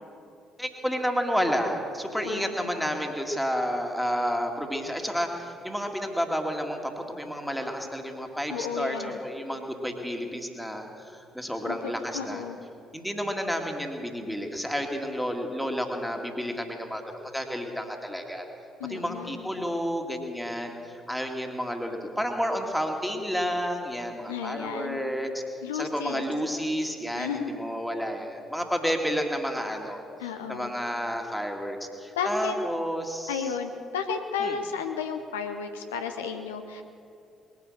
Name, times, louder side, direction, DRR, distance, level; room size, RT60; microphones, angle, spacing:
voice 1, 0.6-12.4 12.9-18.5 18.9-25.4 25.7-30.0 30.5-33.5 34.4-34.6, equal, ahead, 3 dB, 2.2 m, -31 dB
voice 2, 2.2-3.0 8.5-9.2 11.6-12.6 18.8-19.5 24.3-25.0 25.6-26.2 27.1-27.5 30.2-30.7 32.2-32.6 33.3-36.8, left 6 dB, 75° left, 5 dB, 0.7 m, -33 dB
20.5 x 9.6 x 6.6 m, 2.6 s
figure-of-eight pair, 45°, 0 cm